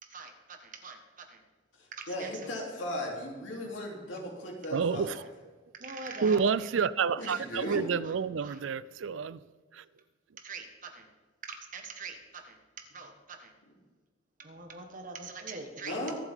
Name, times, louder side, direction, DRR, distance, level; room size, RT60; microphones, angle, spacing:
voice 1, 0.0-1.4 1.9-2.5 4.7-4.9 5.7-6.7 7.2-8.1 8.4-8.6 10.4-11.1 11.4-13.5 14.4-16.1, right 4 dB, 45° right, 4 dB, 1.5 m, -44 dB
voice 2, 1.8-5.1 7.2-7.8 15.8-16.1, left 1 dB, 80° left, -1 dB, 3.1 m, -37 dB
voice 3, 4.7-5.2 6.2-9.4 9.7-9.8, right 6 dB, 80° right, 18 dB, 0.4 m, -29 dB
24.0 x 8.2 x 3.7 m, 1.4 s
head